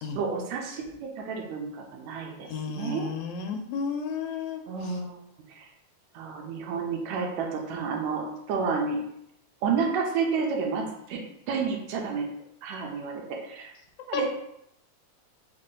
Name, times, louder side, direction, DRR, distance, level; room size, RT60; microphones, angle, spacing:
voice 1, 0.2-3.1 4.7-5.2 5.5-5.7 6.1-9.0 9.6-11.2 11.5-12.3 12.6-13.7 14.1-14.3, right 5 dB, 80° right, 1 dB, 1.9 m, -30 dB
voice 2, 2.5-4.6 14.1-14.2, left 6 dB, 80° left, 4 dB, 1.9 m, -32 dB
4.8 x 2.4 x 3.8 m, 0.77 s
omnidirectional pair, 3.4 m